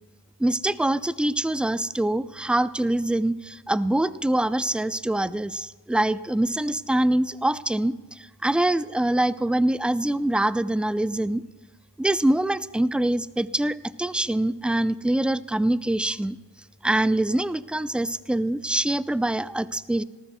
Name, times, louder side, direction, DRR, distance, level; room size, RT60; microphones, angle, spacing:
voice 1, 0.4-11.4 12.0-16.4 16.8-20.0, right 1 dB, ahead, 16 dB, 0.4 m, -24 dB
19.0 x 13.5 x 2.3 m, 1.3 s
supercardioid pair, 45°, 43 cm